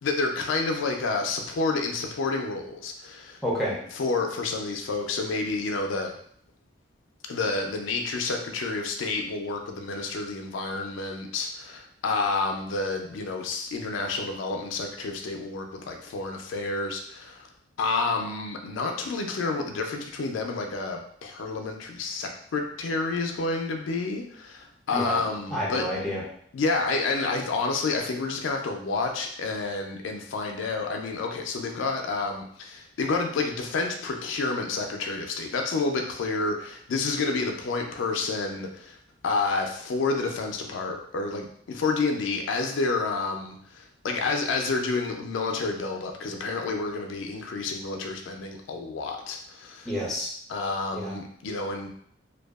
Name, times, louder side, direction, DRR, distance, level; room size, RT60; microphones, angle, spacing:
voice 1, 0.0-3.4 4.0-6.1 7.3-17.5 17.8-25.8 26.5-39.0 39.2-49.9 50.5-51.9, left 3 dB, 80° left, 3 dB, 0.4 m, -29 dB
voice 2, 3.4-3.7 24.9-25.2 25.5-26.2 49.8-50.3 50.9-51.1, equal, ahead, -6 dB, 0.6 m, -29 dB
2.6 x 2.2 x 2.3 m, 0.64 s
head